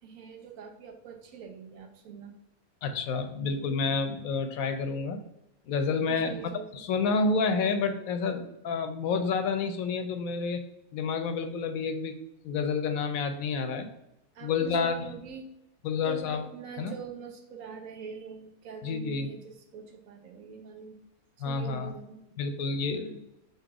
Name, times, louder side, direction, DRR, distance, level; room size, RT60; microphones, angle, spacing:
voice 1, 0.0-2.3 6.1-6.7 14.3-15.5 16.1-21.0 21.4-22.3 22.9-23.2, right 5 dB, 70° right, 5 dB, 1.0 m, -44 dB
voice 2, 2.8-5.2 5.7-6.3 6.7-10.6 10.9-12.2 12.4-13.9 14.4-15.1 15.8-16.4 16.8-16.9 18.8-19.3 21.4-21.9 22.4-23.2, left 4 dB, 75° left, 8 dB, 1.0 m, -29 dB
4.0 x 2.8 x 4.7 m, 0.85 s
omnidirectional pair, 1.5 m